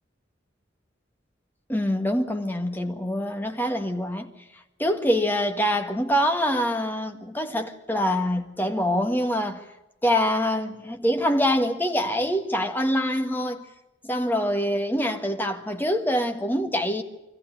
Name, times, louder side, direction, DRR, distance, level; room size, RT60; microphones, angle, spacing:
voice 1, 1.7-4.3 4.8-9.6 10.0-13.7 14.0-17.0, equal, 10° left, 1.6 m, -25 dB
23.5 x 14.5 x 10.0 m
head